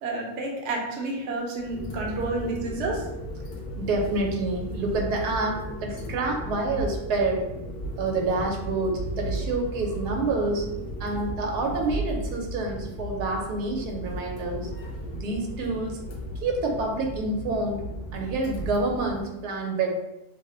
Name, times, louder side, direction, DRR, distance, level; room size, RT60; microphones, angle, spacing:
voice 1, 0.0-3.0, right 2 dB, 60° right, -1 dB, 0.8 m, -30 dB
sound 1, 1.6-19.2, equal, 80° left, 0.5 m, -35 dB
voice 2, 3.8-7.5 8.0-10.6 11.0-14.7 15.2-16.0 16.4-17.9 18.1-19.9, right 3 dB, 85° right, 1 dB, 1.1 m, -28 dB
2.7 x 2.0 x 3.7 m, 0.91 s
omnidirectional pair, 1.6 m